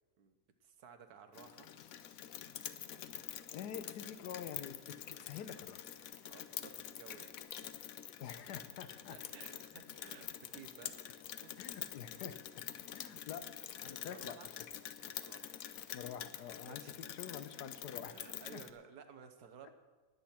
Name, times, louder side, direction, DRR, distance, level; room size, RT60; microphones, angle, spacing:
voice 1, 0.2-1.7 6.3-7.7 9.1-11.6 12.7-13.1 14.1-14.5 15.1-15.5 16.6-16.9 18.0-19.7, right 7 dB, 75° right, 8 dB, 1.5 m, -56 dB
Rain, 1.3-18.7, left 10 dB, 65° left, 1.0 m, -47 dB
voice 2, 3.5-5.9 8.2-9.2 11.6-12.4 12.9-13.5 13.8-14.5 15.9-18.2 18.5-18.6 19.6-19.7, left 8 dB, 90° left, 10 dB, 1.4 m, -47 dB
20.0 x 8.2 x 4.4 m, 1.3 s
omnidirectional pair, 1.7 m